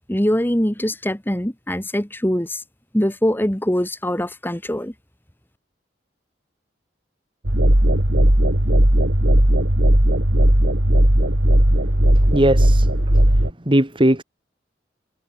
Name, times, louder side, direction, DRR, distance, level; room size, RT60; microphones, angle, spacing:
voice 1, 0.1-2.6 2.9-4.9, equal, 10° left, 1.7 m, -22 dB
sound 1, 7.4-13.5, right 1 dB, 80° right, 3.6 m, -16 dB
voice 2, 12.1-12.9 13.7-14.2, right 1 dB, 25° right, 2.0 m, -19 dB
head